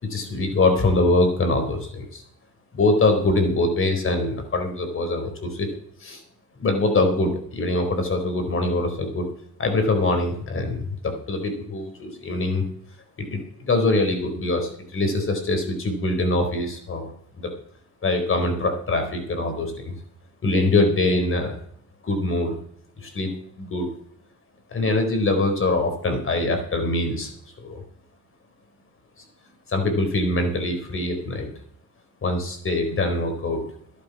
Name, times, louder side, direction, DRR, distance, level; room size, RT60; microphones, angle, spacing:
voice 1, 0.0-2.2 2.7-5.7 6.0-6.2 6.6-9.3 9.6-12.6 13.3-17.1 17.4-17.5 18.0-19.9 20.4-21.6 22.0-22.6 23.0-23.9 24.7-27.3 27.6-27.8 29.7-31.5 32.2-33.6, left 2 dB, 45° left, 6 dB, 4.4 m, -23 dB
12.0 x 11.5 x 6.1 m, 0.64 s
cardioid pair, 90°, 30 cm